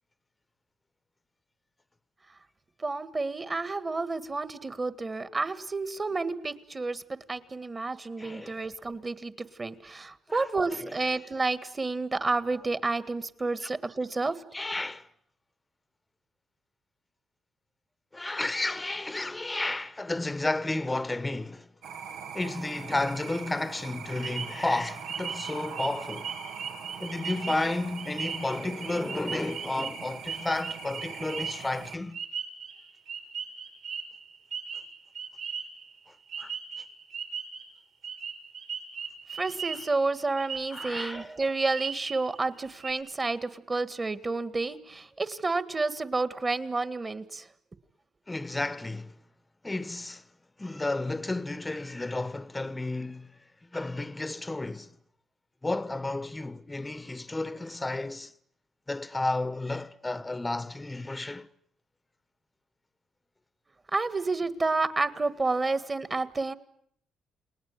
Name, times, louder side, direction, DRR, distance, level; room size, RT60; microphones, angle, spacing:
voice 1, 2.8-7.0 7.3-9.3 9.6-14.4 39.3-47.4 63.9-66.5, right 3 dB, 25° right, 1.9 m, -30 dB
voice 2, 8.2-8.6 10.3-10.4 10.7-11.0 13.6-13.7 14.5-15.1 18.1-21.7 22.3-26.3 27.0-32.2 36.4-36.5 40.7-41.3 48.3-49.1 49.6-50.2 50.6-53.4 53.7-54.9 55.6-58.3 58.9-61.5, left 2 dB, 15° left, 1.1 m, -32 dB
sound 1, 21.8-32.0, right 6 dB, 85° right, 2.2 m, -42 dB
sound 2, 24.2-36.0 36.3-37.7 38.0-40.0 40.4-41.2 41.7-42.3 42.6-42.9, right 6 dB, 65° right, 7.4 m, -38 dB
29.5 x 20.0 x 9.9 m
cardioid pair, 90°, 0 cm